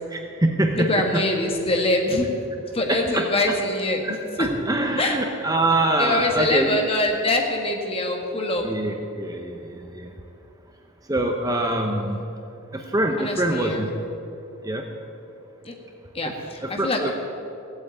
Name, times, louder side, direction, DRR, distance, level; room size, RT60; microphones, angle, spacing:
voice 1, 0.1-1.2 2.9-3.3 4.0-6.8 8.6-10.1 11.1-12.2 12.7-13.9 14.6-14.8 16.6-17.1, right 1 dB, 15° right, 3 dB, 0.7 m, -24 dB
voice 2, 0.7-2.3 2.7-4.6 5.0-5.2 6.0-8.7 13.2-13.8 15.6-15.7 16.1-17.1, left 2 dB, 25° left, 2 dB, 1.6 m, -24 dB
15.5 x 8.7 x 8.2 m, 2.8 s
head